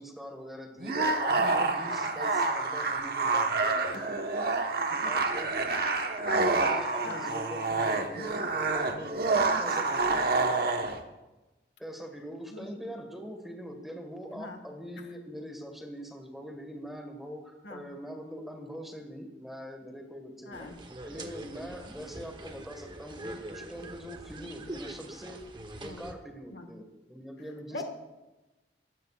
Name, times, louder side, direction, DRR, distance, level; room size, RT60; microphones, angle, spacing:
voice 1, 0.0-4.0 4.4-4.6 4.9-5.8 6.5-8.5 8.7-10.3 11.8-20.7 21.0-25.4 25.8-27.8, equal, ahead, 3 dB, 1.7 m, -43 dB
sound 1, 0.8-11.0, right 3 dB, 55° right, 1.3 m, -28 dB
voice 2, 1.3-1.6 5.0-5.1 6.2-6.5 7.0-7.2 9.5-9.7 12.5-12.8 14.3-14.6 15.0-15.1 17.6-17.8 20.4-20.8 21.8-21.9 25.8-26.0 26.5-26.7 27.7-27.8, left 2 dB, 70° left, 4 dB, 1.7 m, -41 dB
sound 2, 20.5-26.1, right 1 dB, 25° right, 1.1 m, -44 dB
21.5 x 16.0 x 2.5 m, 1.1 s
head